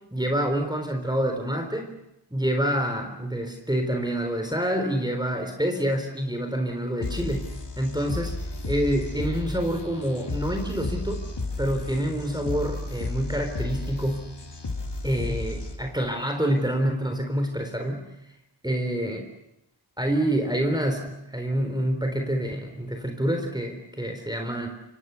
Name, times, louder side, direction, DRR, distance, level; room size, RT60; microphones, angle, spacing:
voice 1, 0.1-1.9 2.3-7.5 7.8-8.4 8.6-11.3 11.6-14.3 15.0-18.1 18.6-19.3 20.0-24.7, right 1 dB, 10° right, 5 dB, 3.8 m, -27 dB
sound 1, 7.0-16.0, left 2 dB, 65° left, 3.3 m, -33 dB
29.0 x 25.5 x 7.0 m, 0.88 s
wide cardioid pair, 55°, 43 cm